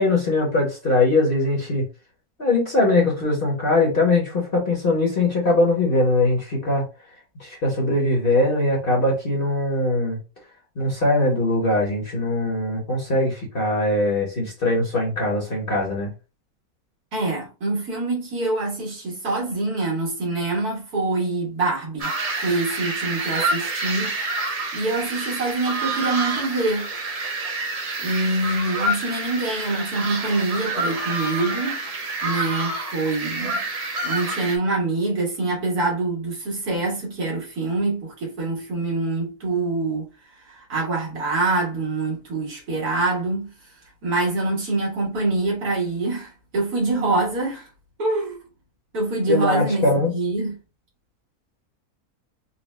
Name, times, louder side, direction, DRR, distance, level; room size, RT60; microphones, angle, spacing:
voice 1, 0.0-1.9 2.4-6.8 7.4-10.2 10.8-16.1 49.3-50.1, left 2 dB, 40° left, 1.1 m, -21 dB
voice 2, 17.1-22.1 22.4-24.5 24.7-26.9 28.0-31.8 32.2-33.6 34.0-40.1 40.4-43.5 44.0-47.7 48.0-48.4 48.9-49.8 50.1-50.6, right 2 dB, 75° right, 1.8 m, -25 dB
sound 1, 22.0-34.6, right 2 dB, 50° right, 0.4 m, -28 dB
4.2 x 2.2 x 3.1 m
omnidirectional pair, 1.6 m